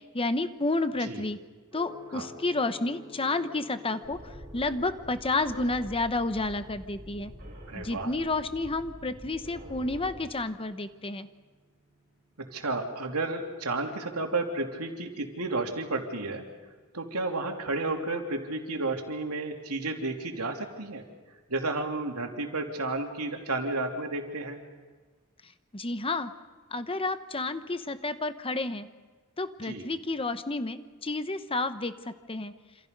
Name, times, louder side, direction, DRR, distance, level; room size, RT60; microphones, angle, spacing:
voice 1, 0.1-1.4 1.7-4.2 4.5-7.3 7.7-11.3 25.7-26.3 26.7-28.9 29.4-31.9 32.3-32.5, left 2 dB, 25° left, 10 dB, 1.0 m, -30 dB
Gong, 1.7-19.6, left 2 dB, 15° right, 7.2 m, -56 dB
sound 1, 4.0-10.3, equal, 45° right, 7.0 m, -46 dB
voice 2, 7.7-8.1 12.4-16.4 16.9-21.0 21.5-24.6 29.6-29.9, right 2 dB, 85° right, 3 dB, 3.2 m, -32 dB
28.0 x 27.0 x 5.4 m, 1.4 s
head